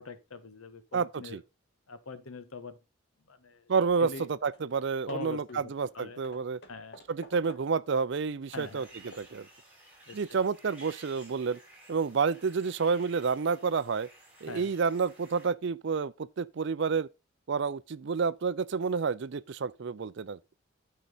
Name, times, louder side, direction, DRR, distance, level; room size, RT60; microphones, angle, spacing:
voice 1, 0.0-1.4 1.9-2.8 3.3-3.6 4.0-4.3 5.1-6.2 6.7-7.0 8.5-8.9 10.1-10.4 14.5-14.7, left 3 dB, 85° left, 1.2 m, -43 dB
voice 2, 0.9-1.4 3.7-6.6 7.1-9.5 10.1-11.6 11.9-14.1 14.4-17.1 17.5-20.4, right 5 dB, 55° right, 0.4 m, -29 dB
Hammer / Wood, 4.5-4.7 5.1-7.9 8.4-9.4, left 2 dB, 50° left, 1.4 m, -53 dB
sound 1, 8.5-15.5, right 2 dB, 5° right, 6.0 m, -55 dB
9.5 x 5.6 x 3.9 m
head